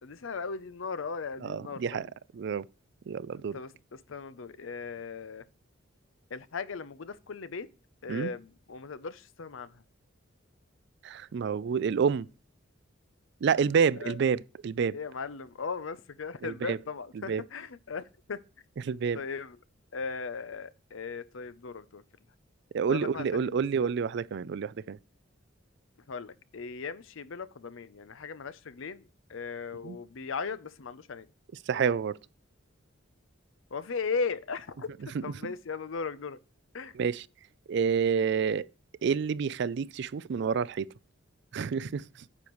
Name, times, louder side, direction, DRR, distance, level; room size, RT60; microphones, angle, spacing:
voice 1, 0.0-2.1 3.5-5.4 6.3-7.7 8.0-9.7 14.0-14.2 14.9-18.4 19.1-19.6 19.9-22.0 22.9-23.5 26.1-31.3 33.7-34.9 35.2-36.4 36.7-36.9, left 5 dB, 75° left, 0.6 m, -37 dB
voice 2, 1.4-2.1 2.3-2.7 3.1-3.6 8.1-8.3 11.0-12.3 13.4-15.0 16.4-16.8 17.2-17.4 18.8-19.2 22.7-25.0 29.8-30.0 31.7-32.2 35.1-35.5 36.9-37.3 37.7-38.7 39.0-40.9 41.5-42.1, right 6 dB, 60° right, 0.4 m, -28 dB
9.6 x 7.0 x 3.1 m
head